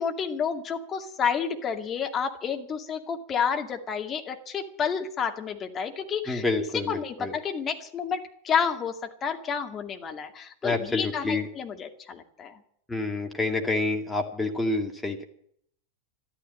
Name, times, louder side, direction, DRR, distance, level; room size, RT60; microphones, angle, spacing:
voice 1, 0.0-6.4 6.9-12.6, left 6 dB, 25° left, 4 dB, 2.3 m, -30 dB
voice 2, 6.3-7.4 10.6-11.5 12.9-15.2, left 2 dB, 5° left, 2 dB, 2.2 m, -28 dB
13.0 x 13.0 x 7.7 m, 0.65 s
figure-of-eight pair, 90°, 0 cm